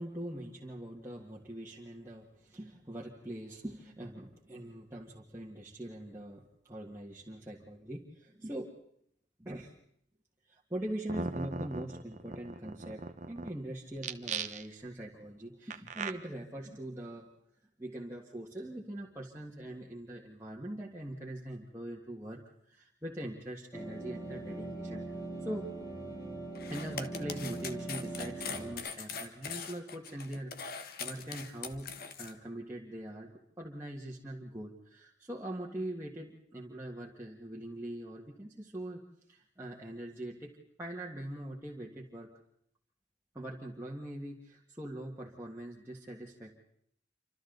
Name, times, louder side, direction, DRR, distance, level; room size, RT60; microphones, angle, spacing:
voice 1, 0.0-8.8 9.4-9.7 10.5-17.3 17.8-22.4 22.7-25.7 26.7-31.9 32.2-33.3 33.6-40.5 40.8-42.3 43.3-46.5, right 1 dB, 15° right, -5 dB, 1.9 m, -42 dB
sound 1, 10.8-10.9 11.1-13.5 14.0-14.9 15.7-16.1, right 4 dB, 40° right, 0.9 m, -38 dB
sound 2, 23.7-28.7, right 2 dB, 25° left, 5.0 m, -41 dB
sound 3, 26.5-32.3, left 5 dB, 55° left, 1.4 m, -41 dB
27.5 x 25.5 x 4.0 m, 0.70 s
head